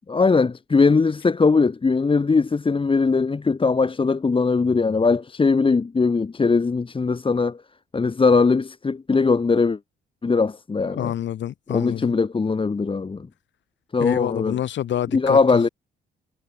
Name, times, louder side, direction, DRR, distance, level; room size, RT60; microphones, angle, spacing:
voice 1, 0.1-7.6 7.9-9.8 10.2-11.1 11.7-13.3 13.9-14.6 15.1-15.7, left 4 dB, 25° left, 1.6 m, -20 dB
voice 2, 10.8-12.1 14.0-15.4, left 11 dB, 65° left, 2.4 m, -27 dB
cardioid pair, 90°, 20 cm